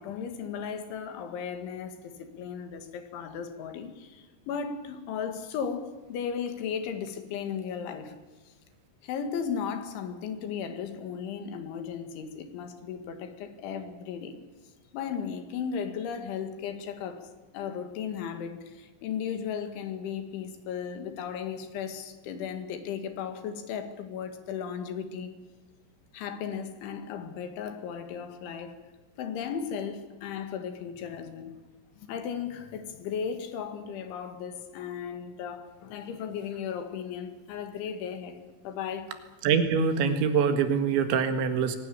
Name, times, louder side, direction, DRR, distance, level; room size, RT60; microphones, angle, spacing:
voice 1, 0.0-8.2 9.0-14.4 14.9-25.3 26.1-28.8 29.2-31.6 32.0-38.4 38.6-39.1, left 7 dB, 85° left, 4.4 m, -36 dB
voice 2, 39.4-41.8, right 6 dB, 80° right, 4.0 m, -24 dB
22.5 x 18.5 x 9.8 m
omnidirectional pair, 5.3 m